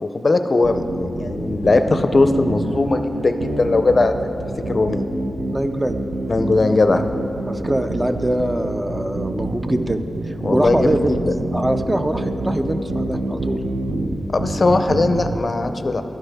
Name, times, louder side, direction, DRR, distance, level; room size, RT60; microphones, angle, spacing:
voice 1, 0.0-4.1 4.7-5.0 6.3-7.1 10.4-11.2 14.3-16.0, left 3 dB, 45° left, 8 dB, 0.5 m, -19 dB
sound 1, 0.6-15.4, right 2 dB, 75° right, 0.8 m, -26 dB
voice 2, 5.5-6.0 7.5-11.1 11.5-13.6, right 1 dB, 15° right, 8 dB, 0.4 m, -23 dB
11.5 x 9.2 x 3.5 m, 2.9 s
wide cardioid pair, 75°, 0 cm